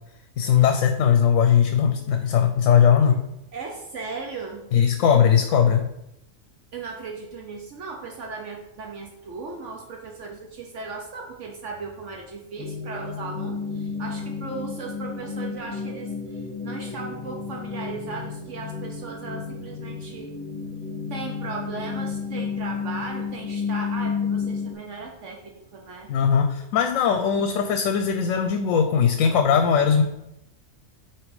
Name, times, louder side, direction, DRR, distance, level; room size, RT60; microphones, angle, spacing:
voice 1, 0.4-3.2 4.7-5.8 26.1-30.0, left 7 dB, 75° left, 7 dB, 0.9 m, -19 dB
voice 2, 3.5-4.7 6.7-20.4 21.1-26.1, right 4 dB, 65° right, 1 dB, 1.1 m, -37 dB
sound 1, 12.6-24.7, left 5 dB, 30° left, 1.3 m, -32 dB
8.4 x 3.1 x 4.8 m, 0.85 s
omnidirectional pair, 1.4 m